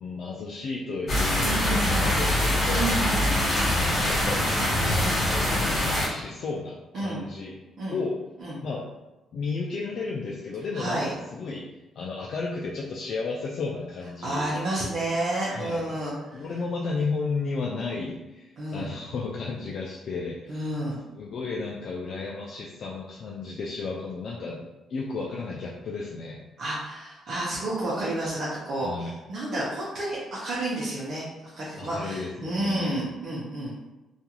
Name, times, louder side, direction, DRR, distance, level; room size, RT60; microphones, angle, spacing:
voice 1, 0.0-2.9 3.8-4.4 4.9-7.6 7.9-8.1 8.6-8.8 9.3-11.0 11.3-11.6 12.0-14.5 15.5-16.0 16.3-20.7 21.2-24.6 24.9-26.4 28.8-29.1 31.8-32.9, left 4 dB, 65° left, -3 dB, 0.4 m, -33 dB
sound 1, 1.1-6.1, left 1 dB, 45° left, 1.3 m, -24 dB
voice 2, 1.4-2.1 2.7-3.3 6.9-7.2 7.8-8.0 8.4-8.6 10.7-11.1 14.2-16.4 18.6-18.8 20.5-21.0 26.6-33.7, right 1 dB, 60° right, -7 dB, 0.7 m, -30 dB
2.4 x 2.3 x 2.9 m, 1.1 s
cardioid pair, 90°, 0 cm